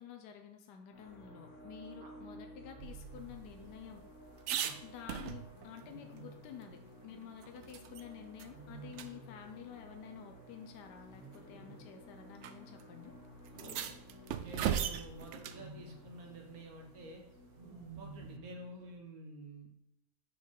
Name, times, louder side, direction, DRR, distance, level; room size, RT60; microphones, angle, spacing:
voice 1, 0.0-4.0 4.8-13.1, left 8 dB, 80° left, 4 dB, 1.3 m, -50 dB
sound 1, 0.9-19.0, equal, 50° left, 1.4 m, -55 dB
Wild animals, 1.1-1.5 2.7-3.4 5.8-6.7 8.5-9.5 11.0-12.0 13.5-14.6 15.4-16.2 17.5-18.6, right 3 dB, 35° right, 1.6 m, -53 dB
sound 2, 2.8-5.8 6.2-6.3 6.6-8.1 8.4-8.5 8.9-9.1 10.1-10.2 11.1-11.4 12.4-12.5 12.8-12.9 13.5-15.7 17.9-18.4, right 9 dB, 90° right, 0.6 m, -39 dB
voice 2, 14.4-17.2 18.0-19.7, right 1 dB, 60° right, 2 dB, 1.5 m, -49 dB
6.5 x 5.4 x 3.9 m, 0.79 s
omnidirectional pair, 1.8 m